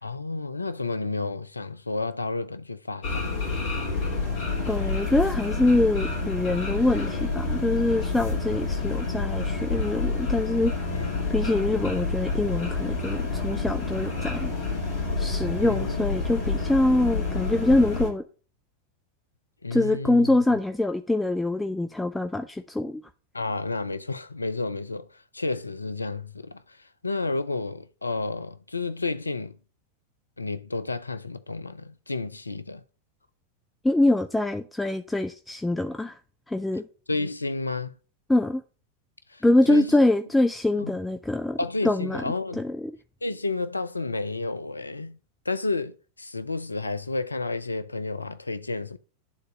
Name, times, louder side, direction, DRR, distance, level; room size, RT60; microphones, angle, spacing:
voice 1, 0.0-3.5 8.8-9.0 10.9-11.2 15.6-16.2 19.6-20.3 23.3-26.8 27.0-29.6 30.4-32.8 37.1-37.9 39.3-40.0 40.8-40.9 41.6-42.6 43.2-45.2 45.5-49.0, left 3 dB, 80° left, 0.5 m, -31 dB
sound 1, 3.0-18.1, left 3 dB, 50° left, 3.3 m, -28 dB
voice 2, 4.7-10.7 11.3-14.5 15.2-18.2 19.7-23.0 33.8-36.1 36.5-36.8 38.3-38.6 39.4-41.6 41.8-42.2 42.5-42.9, left 2 dB, 5° left, 0.5 m, -24 dB
9.7 x 4.0 x 6.3 m
figure-of-eight pair, 90°, 0 cm